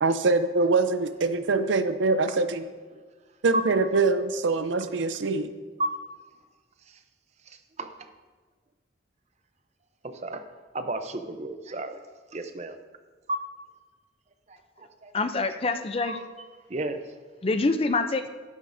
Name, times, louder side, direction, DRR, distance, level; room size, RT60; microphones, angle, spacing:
voice 1, 0.0-2.6 3.4-5.5, right 3 dB, 80° right, 11 dB, 0.6 m, -24 dB
voice 2, 7.5-8.1 10.0-10.4 10.7-12.0 12.3-12.8 13.3-13.6 14.5-15.1 16.0-16.4 16.7-17.1, right 1 dB, 35° right, 8 dB, 0.6 m, -33 dB
voice 3, 15.1-16.2 17.4-18.3, left 3 dB, 30° left, 9 dB, 0.5 m, -26 dB
11.5 x 11.5 x 2.6 m, 1.4 s
head